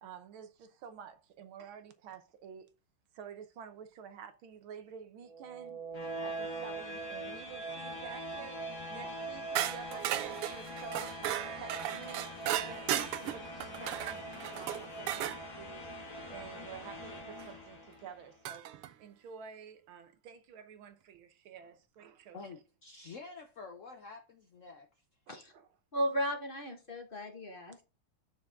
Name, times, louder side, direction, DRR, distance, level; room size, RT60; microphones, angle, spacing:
voice 1, 0.0-2.7 3.1-5.8 6.2-11.2 11.5-15.9 16.3-18.7 19.0-22.4 25.3-25.7, right 7 dB, 70° right, 1.7 m, -50 dB
sound 1, 5.2-18.2, right 1 dB, 60° left, 2.7 m, -42 dB
sound 2, 9.5-15.4 17.4-17.5 18.4-18.9, right 12 dB, 90° right, 1.6 m, -36 dB
voice 2, 22.3-24.9, left 4 dB, 85° left, 0.6 m, -48 dB
voice 3, 25.9-27.8, equal, 30° left, 1.4 m, -35 dB
7.3 x 6.1 x 3.7 m
omnidirectional pair, 2.4 m